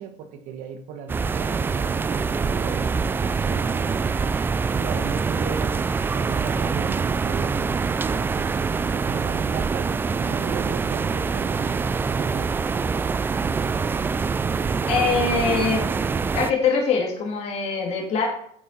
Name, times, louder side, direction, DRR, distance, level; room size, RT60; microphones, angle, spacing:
voice 1, 0.0-4.0 4.7-5.8 6.1-12.7, right 6 dB, 65° right, 1.6 m, -37 dB
sound 1, 1.1-16.5, right 5 dB, 15° right, 0.3 m, -25 dB
voice 2, 14.9-15.9 16.3-18.3, left 4 dB, 50° left, 2.5 m, -23 dB
9.0 x 7.8 x 4.1 m
cardioid pair, 155°, 14 cm